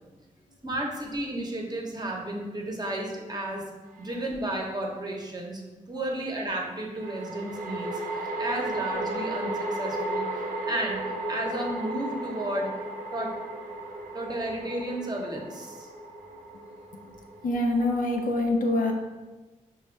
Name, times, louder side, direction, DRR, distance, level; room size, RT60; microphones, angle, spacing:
voice 1, 0.6-3.6 4.0-5.6 5.9-8.0 8.4-10.2 10.6-11.0 11.3-12.7 13.1-13.3 14.1-15.9, right 1 dB, 30° right, 0 dB, 0.9 m, -32 dB
sound 1, 4.0-4.1 7.0-18.3, right 1 dB, 90° right, 0.6 m, -35 dB
voice 2, 17.4-18.9, left 2 dB, 75° left, 2 dB, 0.6 m, -26 dB
5.1 x 2.3 x 3.2 m, 1.2 s
cardioid pair, 60°, 14 cm